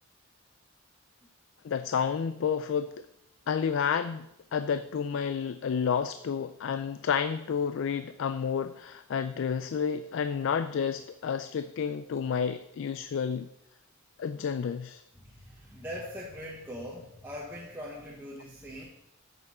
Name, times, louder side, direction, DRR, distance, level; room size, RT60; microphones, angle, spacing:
voice 1, 1.6-3.1 3.5-4.3 4.5-13.5 14.2-15.0, left 7 dB, 60° left, 12 dB, 0.3 m, -30 dB
voice 2, 15.2-18.8, equal, 10° right, -5 dB, 1.1 m, -41 dB
8.4 x 6.7 x 4.2 m, 0.83 s
head